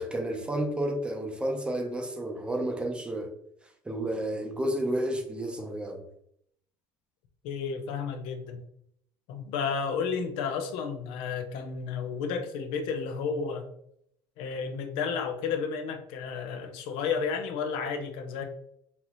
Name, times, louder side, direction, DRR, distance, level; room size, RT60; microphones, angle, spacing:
voice 1, 0.0-3.3 3.8-6.0, right 1 dB, 10° right, 0.7 m, -31 dB
voice 2, 7.4-8.6 9.3-13.7 14.4-18.4, left 5 dB, 75° left, 0.8 m, -32 dB
5.7 x 2.7 x 3.1 m
cardioid pair, 140°, 9 cm